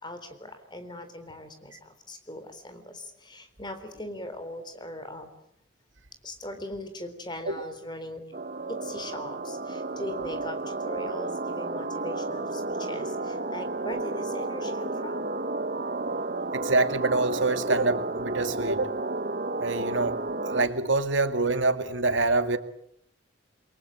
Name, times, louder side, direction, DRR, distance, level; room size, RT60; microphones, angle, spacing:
voice 1, 0.0-5.3 6.2-8.2 8.7-15.2, left 1 dB, 25° left, 8 dB, 3.9 m, -40 dB
sound 1, 8.3-20.7, right 2 dB, 45° right, 1.1 m, -32 dB
voice 2, 16.5-19.0 19.6-22.6, right 3 dB, 75° right, 9 dB, 2.1 m, -26 dB
28.5 x 23.5 x 8.8 m, 0.70 s
head